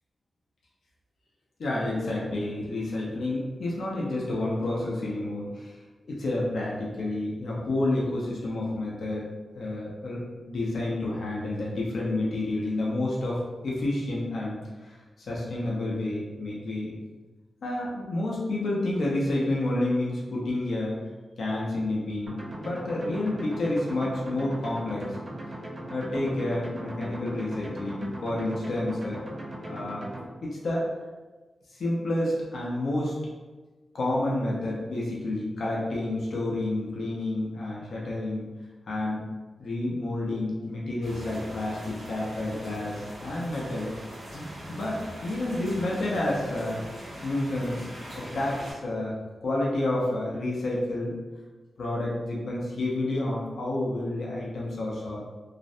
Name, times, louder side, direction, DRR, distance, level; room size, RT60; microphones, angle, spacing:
voice 1, 1.6-5.8 6.1-9.3 9.6-14.6 14.8-15.0 15.3-16.9 17.6-20.9 21.4-25.2 25.9-29.2 29.6-30.0 30.4-30.8 31.7-33.1 33.9-38.5 38.9-39.2 39.6-43.9 44.3-46.8 47.2-49.1 49.4-51.1 51.8-55.2, left 1 dB, 75° left, -4 dB, 0.5 m, -29 dB
sound 1, 22.3-30.3, right 1 dB, 40° right, 0.5 m, -39 dB
sound 2, 41.0-48.7, equal, 90° right, 1.0 m, -42 dB
2.4 x 2.1 x 2.6 m, 1.2 s
wide cardioid pair, 150°, 0 cm